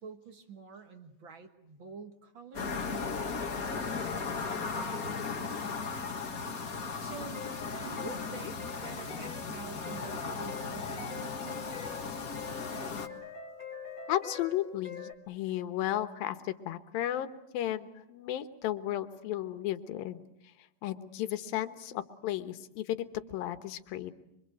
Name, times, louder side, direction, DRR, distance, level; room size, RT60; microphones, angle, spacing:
voice 1, 0.0-5.7 7.0-12.0, right 5 dB, 45° right, 7 dB, 1.7 m, -48 dB
sound 1, 2.5-13.1, left 5 dB, 40° left, 1.3 m, -36 dB
sound 2, 7.2-15.1, left 5 dB, 15° left, 2.1 m, -45 dB
voice 2, 14.1-20.2 20.8-24.1, left 12 dB, 80° left, 10 dB, 3.0 m, -34 dB
25.0 x 25.0 x 7.8 m, 0.84 s
omnidirectional pair, 4.1 m